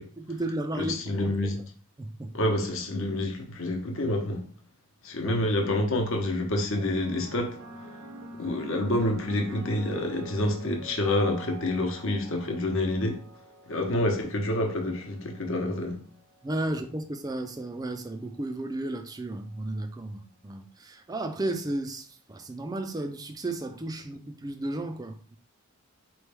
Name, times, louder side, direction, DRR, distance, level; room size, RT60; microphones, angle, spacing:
voice 1, 0.2-1.6 2.0-2.3 5.2-5.3 16.4-25.4, right 1 dB, 15° right, 0.4 m, -34 dB
voice 2, 0.7-1.6 2.3-4.4 5.0-7.6 8.4-13.2 13.7-16.0, left 1 dB, 60° left, 0.9 m, -28 dB
sound 1, 7.0-15.6 16.5-16.9, right 2 dB, 65° right, 0.7 m, -45 dB
4.4 x 3.1 x 3.3 m
head